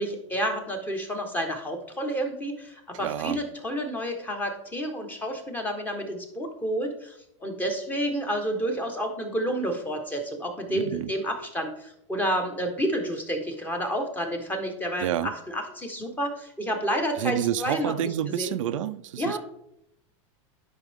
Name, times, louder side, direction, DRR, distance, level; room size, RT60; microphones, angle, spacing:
voice 1, 0.0-17.9 18.4-18.5 19.2-19.4, equal, 10° left, 1.3 m, -30 dB
voice 2, 2.9-3.4 10.7-11.1 15.0-15.3 17.2-19.4, right 11 dB, 85° right, 0.5 m, -29 dB
10.5 x 5.5 x 3.6 m
supercardioid pair, 140°, 16 cm